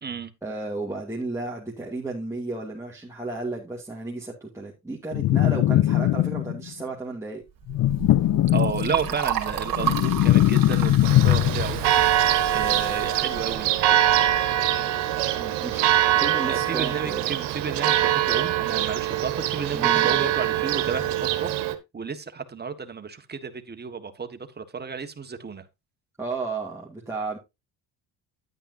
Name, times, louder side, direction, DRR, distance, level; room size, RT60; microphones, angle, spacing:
voice 1, 0.4-7.4 9.0-9.1 15.3-17.2 19.7-20.2 26.2-27.4, right 3 dB, 5° right, 2.3 m, -33 dB
sound 1, 5.1-6.7 7.7-9.2 9.5-11.9, left 14 dB, 50° left, 0.5 m, -21 dB
Liquid, 7.6-14.3, right 10 dB, 55° right, 2.5 m, -33 dB
voice 2, 8.5-12.1 12.5-13.7 16.4-21.0 21.4-21.5 21.9-25.7, right 5 dB, 25° right, 1.5 m, -32 dB
Church bell, 11.1-21.7, right 13 dB, 75° right, 1.3 m, -23 dB
10.0 x 9.0 x 2.7 m
supercardioid pair, 85°, 41 cm